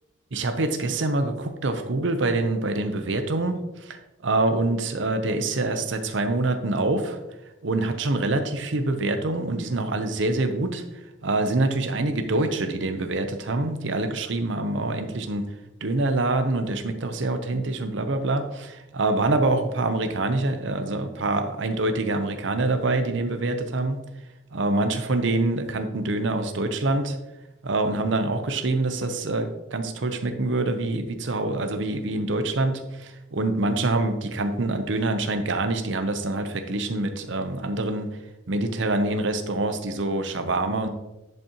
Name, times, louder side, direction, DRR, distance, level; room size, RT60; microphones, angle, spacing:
voice 1, 0.3-7.2 7.6-10.8 11.2-15.4 15.8-24.0 24.5-27.2 27.6-38.1 38.5-40.9, right 2 dB, 65° right, 7 dB, 0.7 m, -25 dB
10.5 x 5.5 x 2.9 m, 0.97 s
head